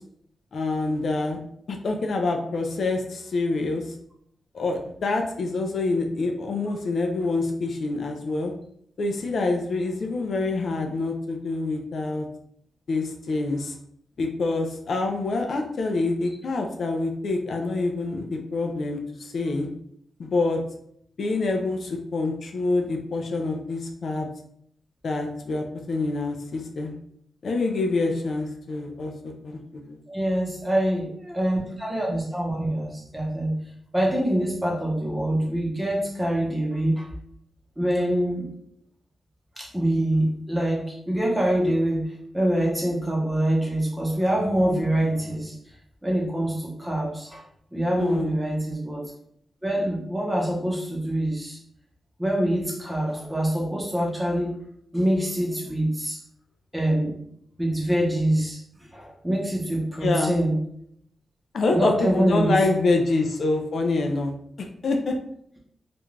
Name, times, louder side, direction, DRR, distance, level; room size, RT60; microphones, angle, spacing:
voice 1, 0.5-1.4 1.7-3.8 4.5-8.5 9.0-12.3 12.9-13.7 14.2-19.7 20.2-20.6 21.2-24.3 25.0-26.9 27.4-29.1 29.4-30.0 48.0-48.3 60.0-60.4 61.5-64.3 64.8-65.2, left 3 dB, 55° left, 3 dB, 0.3 m, -26 dB
voice 2, 30.1-33.5 33.9-37.1 37.8-38.5 39.6-42.0 42.3-45.6 46.0-47.4 47.7-49.1 49.6-51.6 52.2-54.5 54.9-56.2 56.7-57.2 57.6-58.6 58.9-60.6 61.7-62.6, right 1 dB, 10° right, -2 dB, 0.6 m, -25 dB
2.4 x 2.2 x 3.1 m, 0.69 s
wide cardioid pair, 160°, 0 cm